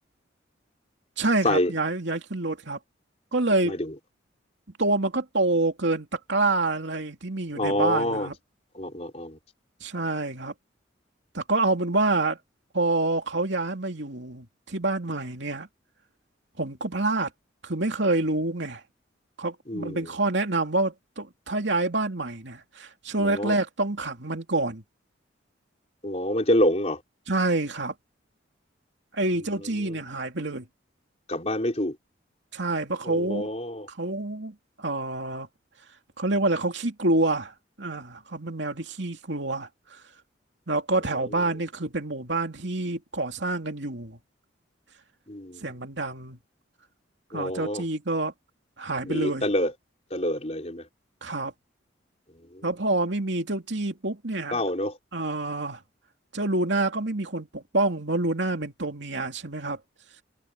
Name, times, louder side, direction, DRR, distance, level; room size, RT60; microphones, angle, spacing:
voice 1, 1.2-2.8 3.3-3.8 4.8-8.3 9.8-10.5 11.3-12.4 12.7-15.7 16.6-17.3 17.6-18.8 19.4-24.8 27.3-27.9 29.1-30.7 32.5-33.5 33.9-35.5 36.2-37.5 37.8-39.7 40.7-44.2 45.6-46.4 47.3-48.3 48.8-49.5 51.2-51.5 52.6-54.6 55.1-55.8 56.3-59.8, right 2 dB, 65° right, 2.8 m, -27 dB
voice 2, 7.5-8.3 8.7-9.4 19.7-20.0 23.2-23.5 26.0-27.0 31.3-31.9 33.1-33.9 45.3-45.6 47.3-47.8 49.0-49.7 50.1-50.8 54.5-55.0, left 1 dB, 35° left, 4.2 m, -26 dB
head